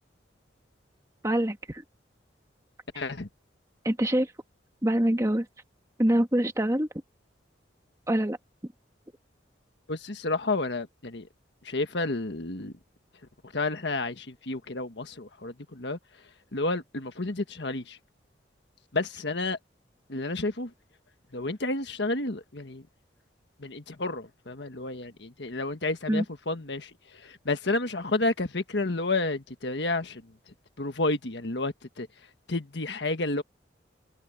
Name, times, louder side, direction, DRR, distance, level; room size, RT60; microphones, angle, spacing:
voice 1, 1.2-1.8 3.8-4.3 4.8-5.5 6.0-6.9 8.1-8.4 26.1-26.2, right 1 dB, 15° right, 1.5 m, -25 dB
voice 2, 2.9-3.3 9.9-11.3 11.6-12.7 13.5-16.0 16.5-18.0 18.9-19.6 20.1-20.7 21.3-22.9 23.6-30.2 30.8-32.1 32.5-33.4, left 2 dB, 70° left, 1.5 m, -31 dB
head